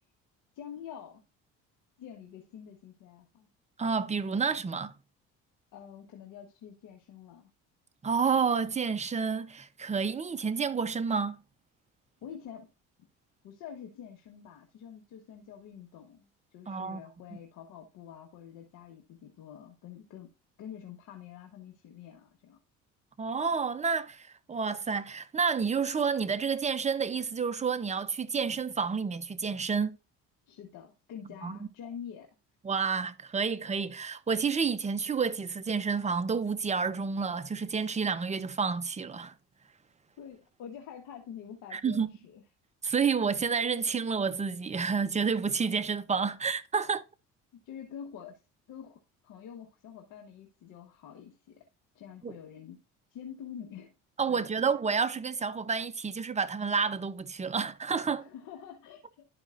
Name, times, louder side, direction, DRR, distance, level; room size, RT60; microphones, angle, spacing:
voice 1, 0.5-1.2 2.0-3.5 5.7-7.5 12.2-12.7 13.4-20.3 20.6-22.6 30.5-32.3 40.2-42.4 47.6-48.4 48.7-49.0 49.2-51.6 51.9-52.8 53.1-53.9 54.3-54.5 58.2-59.3, left 8 dB, 70° left, 1.4 m, -46 dB
voice 2, 3.8-4.9 8.0-11.4 16.7-17.0 17.3-17.4 23.2-30.0 31.4-31.7 32.6-39.3 41.7-42.1 42.8-47.0 52.2-52.4 54.2-58.3, right 5 dB, 20° right, 0.8 m, -30 dB
12.0 x 5.1 x 2.5 m
supercardioid pair, 85°, 32 cm